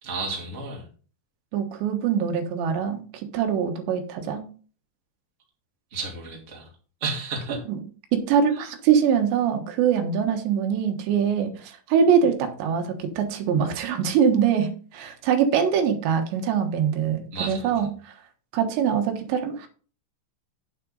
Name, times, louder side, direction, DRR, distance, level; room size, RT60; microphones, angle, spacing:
voice 1, 0.0-0.9 5.9-6.7 7.0-7.6 8.5-8.7 17.3-17.9, right 3 dB, 25° right, 0 dB, 1.9 m, -32 dB
voice 2, 1.5-4.4 7.7-7.8 8.1-18.2 18.5-19.7, right 7 dB, 90° right, 5 dB, 3.6 m, -23 dB
9.1 x 7.6 x 3.9 m, 0.40 s
omnidirectional pair, 4.9 m